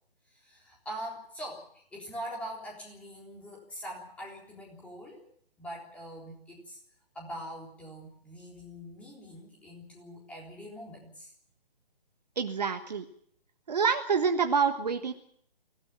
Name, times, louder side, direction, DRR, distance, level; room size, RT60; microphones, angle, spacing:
voice 1, 0.3-5.3 5.6-6.8 7.1-11.3, equal, 5° left, -2 dB, 3.7 m, -43 dB
voice 2, 12.4-13.0 13.7-15.1, right 5 dB, 45° right, 8 dB, 1.5 m, -27 dB
24.0 x 16.5 x 7.3 m, 0.65 s
figure-of-eight pair, 140°, 30 cm